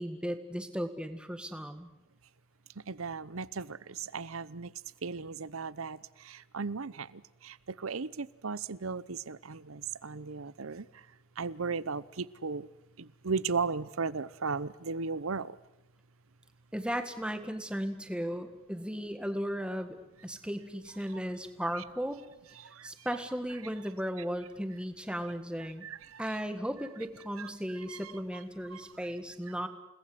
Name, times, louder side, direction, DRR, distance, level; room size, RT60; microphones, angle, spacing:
voice 1, 0.0-1.9 16.7-20.0 20.2-22.2 22.8-25.9 26.2-29.7, equal, 5° right, 8 dB, 1.7 m, -36 dB
voice 2, 2.9-4.7 5.0-11.0 11.4-12.7 13.0-15.6 22.6-22.9 25.6-26.2 27.4-27.5 27.9-28.1 28.7-28.8, right 4 dB, 80° right, 19 dB, 0.8 m, -36 dB
29.5 x 19.5 x 7.9 m, 0.94 s
head